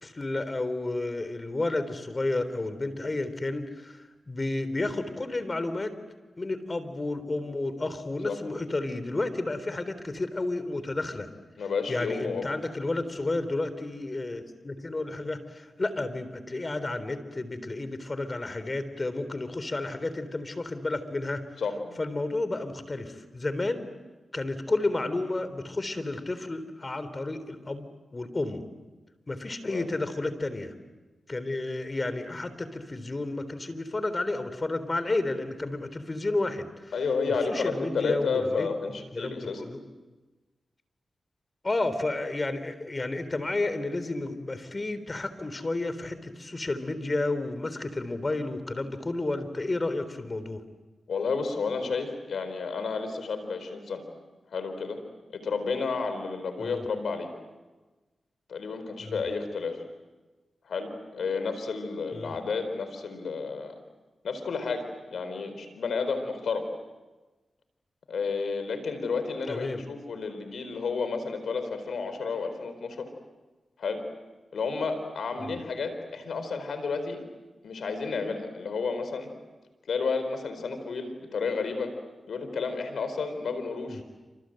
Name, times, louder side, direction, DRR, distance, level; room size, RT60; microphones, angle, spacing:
voice 1, 0.0-5.9 6.4-11.3 11.9-21.4 22.0-23.8 24.3-27.9 28.1-28.6 29.3-30.7 31.3-36.9 37.3-38.7 39.1-39.8 41.6-50.6 56.6-56.8 59.0-59.2 62.1-62.4 69.5-69.8 75.4-75.6 83.9-84.0, left 2 dB, 40° left, 12 dB, 3.7 m, -31 dB
voice 2, 11.6-12.5 21.6-22.0 29.6-29.9 36.9-39.6 51.1-54.0 54.5-55.0 55.3-57.3 58.5-59.8 60.6-63.7 64.2-66.7 68.1-73.1 73.8-74.0 74.5-77.2 77.6-79.3 79.9-81.9 82.3-84.0, left 4 dB, 80° left, 9 dB, 4.3 m, -31 dB
28.0 x 26.5 x 7.9 m, 1.2 s
cardioid pair, 50°, 0 cm